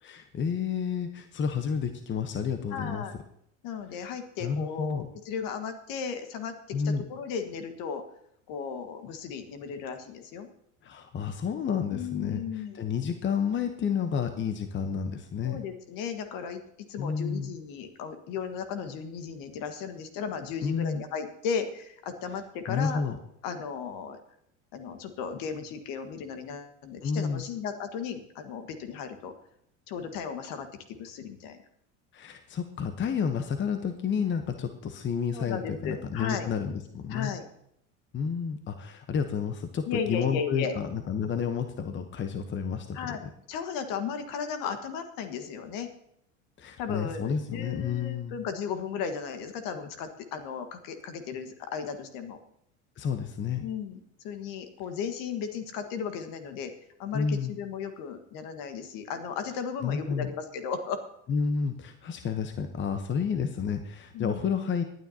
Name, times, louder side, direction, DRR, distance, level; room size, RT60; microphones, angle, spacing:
voice 1, 0.0-3.0 4.4-5.1 6.7-7.0 10.8-12.4 12.7-15.6 17.0-17.5 20.6-21.0 22.7-23.2 27.0-27.4 32.1-37.3 38.1-43.0 46.6-48.4 53.0-53.6 57.1-57.5 59.8-60.3 61.3-64.8, left 6 dB, 30° left, 8 dB, 1.0 m, -30 dB
voice 2, 2.7-3.1 3.6-6.5 6.8-8.0 8.5-10.5 11.9-12.8 15.4-16.6 16.9-23.0 23.4-24.2 24.7-29.3 29.9-31.6 35.3-36.5 37.1-37.4 39.9-40.8 42.9-43.2 43.5-45.9 46.8-52.4 53.6-54.0 54.2-56.7 57.0-61.0 64.1-64.4, left 6 dB, 55° left, 8 dB, 1.6 m, -35 dB
24.0 x 9.4 x 2.9 m, 0.75 s
hypercardioid pair, 85°, 39 cm